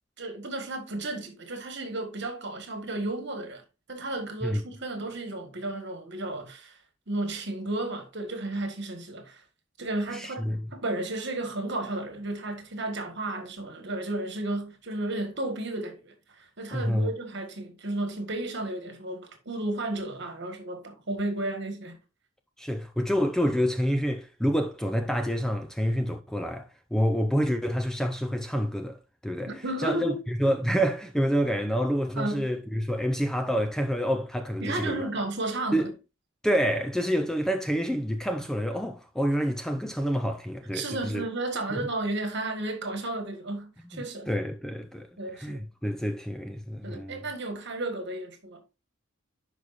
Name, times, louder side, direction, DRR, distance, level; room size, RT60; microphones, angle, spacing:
voice 1, 0.2-3.6 3.9-6.8 7.1-9.4 9.8-22.0 29.5-30.2 32.2-32.5 34.6-35.9 40.7-44.3 45.2-45.7 46.8-48.6, right 2 dB, 55° right, 1.5 m, -33 dB
voice 2, 10.1-10.6 16.7-17.1 22.6-35.1 35.7-35.9 36.4-41.2 41.7-41.8 43.9-45.1 45.3-47.2, equal, 5° left, 0.4 m, -28 dB
10.5 x 4.9 x 2.5 m
head